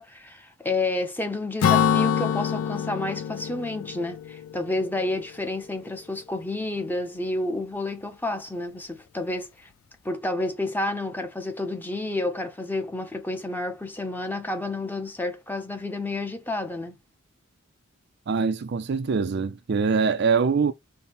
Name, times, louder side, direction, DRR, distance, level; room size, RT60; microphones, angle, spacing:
voice 1, 0.0-9.7 10.0-17.0, left 2 dB, 10° left, 0.7 m, -30 dB
Acoustic guitar / Strum, 1.6-5.2, left 8 dB, 80° left, 0.3 m, -25 dB
voice 2, 18.3-20.7, right 5 dB, 55° right, 0.4 m, -23 dB
5.4 x 2.1 x 4.2 m
head